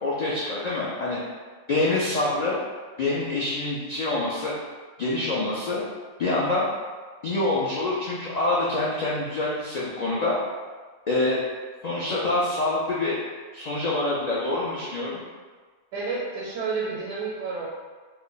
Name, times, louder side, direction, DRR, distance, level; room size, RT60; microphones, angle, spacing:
voice 1, 0.0-1.2 1.7-2.6 3.0-4.5 5.0-5.8 6.2-6.7 7.2-10.3 11.1-11.4 11.8-13.2 13.5-15.2, left 2 dB, 85° left, -6 dB, 0.3 m, -26 dB
voice 2, 15.9-17.7, right 4 dB, 80° right, -5 dB, 0.9 m, -30 dB
2.5 x 2.1 x 3.8 m, 1.4 s
omnidirectional pair, 1.3 m